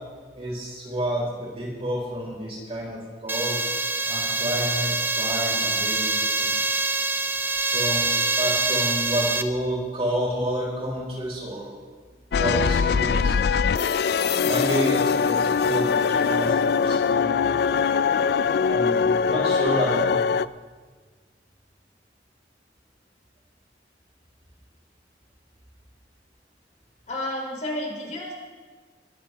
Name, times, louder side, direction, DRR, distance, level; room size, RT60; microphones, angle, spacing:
voice 1, 0.3-3.6 4.1-6.6 7.7-11.7 12.4-13.4 14.4-17.6 18.7-20.2, right 1 dB, 35° right, -3 dB, 4.8 m, -29 dB
sound 1, 3.3-9.4, right 3 dB, 10° right, 0.6 m, -25 dB
sound 2, 12.3-20.5, left 6 dB, 60° left, 0.3 m, -22 dB
voice 2, 27.1-28.3, left 1 dB, 40° left, -1 dB, 3.3 m, -31 dB
22.5 x 14.5 x 3.5 m, 1.5 s
head